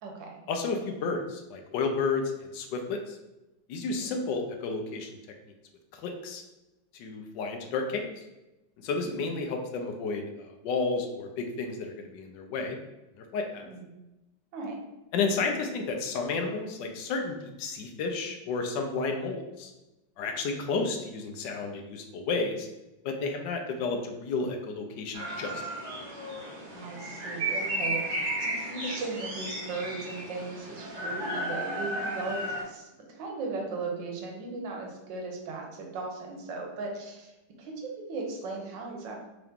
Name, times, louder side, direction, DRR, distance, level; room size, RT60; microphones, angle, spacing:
voice 1, 0.5-3.2 3.7-5.2 5.9-6.4 6.9-8.1 8.8-12.8 13.2-13.7 15.1-19.7 20.2-22.7 23.0-25.6, left 4 dB, 75° left, 4 dB, 1.2 m, -32 dB
sound 1, 25.1-32.6, right 1 dB, 35° right, 1.0 m, -34 dB
voice 2, 26.7-37.3 37.6-39.2, right 3 dB, 80° right, 1 dB, 1.5 m, -37 dB
3.7 x 2.9 x 3.5 m, 0.99 s
omnidirectional pair, 2.0 m